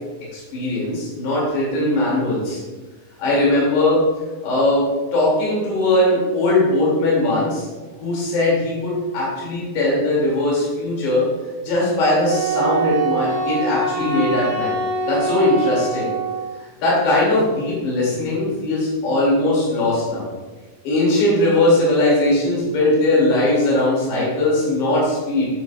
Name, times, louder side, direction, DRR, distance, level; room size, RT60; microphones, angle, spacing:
voice 1, 0.3-2.6 3.2-4.0 4.4-4.9 5.1-7.7 8.0-11.2 11.6-14.7 15.1-16.1 16.6-20.3 20.8-25.5, left 2 dB, 80° left, -5 dB, 4.6 m, -19 dB
Wind instrument woodwind instrument, 12.3-16.5, right 3 dB, 80° right, 2.9 m, -24 dB
11.5 x 7.4 x 2.4 m, 1.2 s
omnidirectional pair, 4.9 m